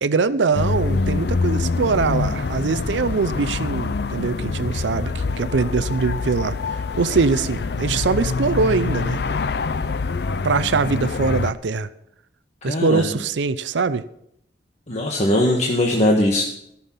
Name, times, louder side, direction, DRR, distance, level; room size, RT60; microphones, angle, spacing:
voice 1, 0.0-9.2 10.4-11.9 12.6-14.0, right 4 dB, 80° right, 14 dB, 0.5 m, -22 dB
sound 1, 0.5-11.5, left 4 dB, 60° left, 0.5 m, -25 dB
voice 2, 12.7-13.1 14.9-16.4, left 1 dB, 40° left, -1 dB, 1.4 m, -20 dB
15.0 x 7.2 x 5.7 m, 0.74 s
head